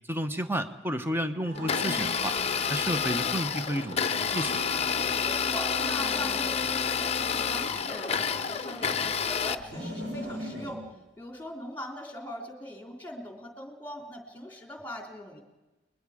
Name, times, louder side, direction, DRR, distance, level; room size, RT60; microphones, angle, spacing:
voice 1, 0.1-2.4 2.7-4.8, right 1 dB, 15° right, 9 dB, 1.0 m, -32 dB
sound 1, 1.4-2.6 3.0-5.1 5.5-6.7 7.2-9.1 9.6-10.8, equal, 65° right, 5.5 m, -41 dB
Domestic sounds home sounds, 1.5-9.5, left 6 dB, 35° left, 0.7 m, -29 dB
voice 2, 5.1-10.8 11.2-15.4, left 1 dB, 10° left, 2 dB, 3.2 m, -41 dB
30.0 x 21.5 x 5.0 m, 1.1 s
head